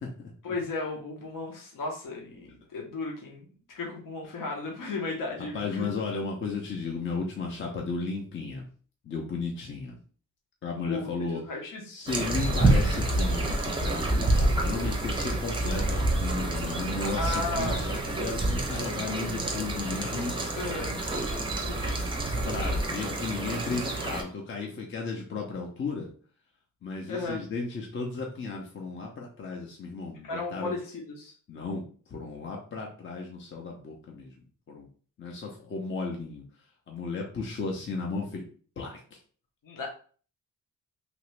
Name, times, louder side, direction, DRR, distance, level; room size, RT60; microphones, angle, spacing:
voice 1, 0.4-5.9 10.8-12.0 17.2-18.0 20.6-21.0 21.7-21.9 27.1-27.4 30.2-31.3 39.6-39.9, left 2 dB, 75° left, 0 dB, 0.9 m, -35 dB
voice 2, 5.5-8.6 9.1-10.0 10.6-11.4 11.9-20.4 22.4-26.1 26.8-30.7 31.5-31.8 32.1-34.3 34.7-34.9 35.2-36.4 36.9-38.4 38.8-39.0, left 4 dB, 40° left, -1 dB, 0.6 m, -34 dB
sound 1, 12.1-24.2, right 2 dB, 15° right, 0.5 m, -28 dB
2.9 x 2.6 x 3.1 m, 0.43 s
wide cardioid pair, 145°, 33 cm